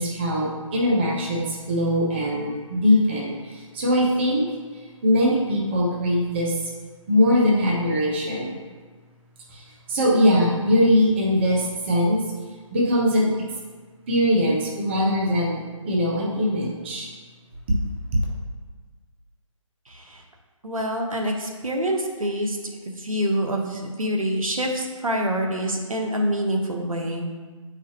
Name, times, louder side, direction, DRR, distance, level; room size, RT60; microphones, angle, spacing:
voice 1, 0.0-4.5 5.0-6.5 7.1-8.6 9.5-9.6 9.9-12.2 12.7-13.3 14.1-17.1 17.7-17.8, left 1 dB, 20° right, -2 dB, 0.7 m, -21 dB
voice 2, 20.6-22.6 23.0-27.3, equal, 80° right, 1 dB, 1.1 m, -26 dB
7.2 x 4.8 x 2.8 m, 1.4 s
figure-of-eight pair, 155°, 17 cm